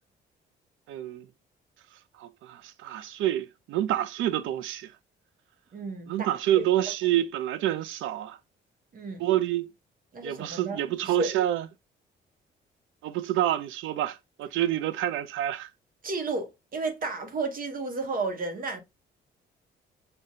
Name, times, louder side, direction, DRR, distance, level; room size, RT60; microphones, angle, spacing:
voice 1, 0.9-1.3 2.2-4.9 6.1-8.4 9.2-9.7 10.2-11.7 13.0-15.7, right 12 dB, 85° right, 0.4 m, -28 dB
voice 2, 5.7-6.3 6.5-6.6 8.9-9.3 10.1-11.3 16.0-18.8, right 3 dB, 45° right, 0.8 m, -32 dB
5.0 x 2.2 x 2.5 m
cardioid pair, 90°, 20 cm